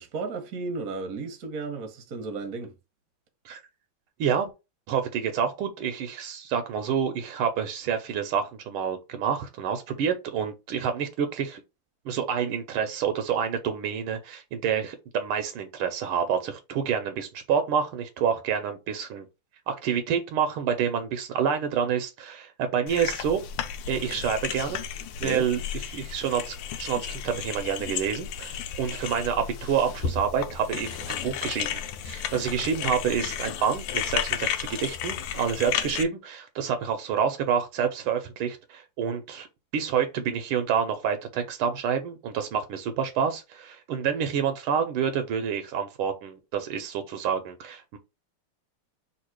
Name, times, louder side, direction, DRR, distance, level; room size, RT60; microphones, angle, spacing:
voice 1, 0.0-2.7 25.2-25.5, right 3 dB, 55° right, 1.1 m, -34 dB
voice 2, 4.2-4.5 4.9-11.6 12.0-19.2 19.7-23.4 23.9-24.8 25.2-39.5 39.7-48.0, right 7 dB, 80° right, 1.5 m, -28 dB
sound 1, 22.9-36.0, left 9 dB, 80° left, 1.5 m, -33 dB
3.6 x 2.8 x 4.5 m
omnidirectional pair, 2.4 m